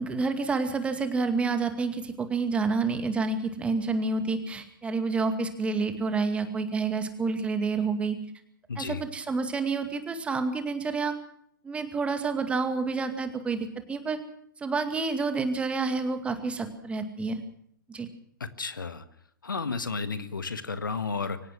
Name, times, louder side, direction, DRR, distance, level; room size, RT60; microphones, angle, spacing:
voice 1, 0.0-8.2 8.8-11.1 11.6-14.2 14.6-17.4 17.9-18.1, right 4 dB, 10° right, 8 dB, 2.3 m, -29 dB
voice 2, 8.7-9.0 18.4-19.0 19.4-21.4, left 4 dB, 70° left, 11 dB, 1.7 m, -32 dB
24.5 x 17.5 x 6.3 m, 0.66 s
figure-of-eight pair, 115°, 11 cm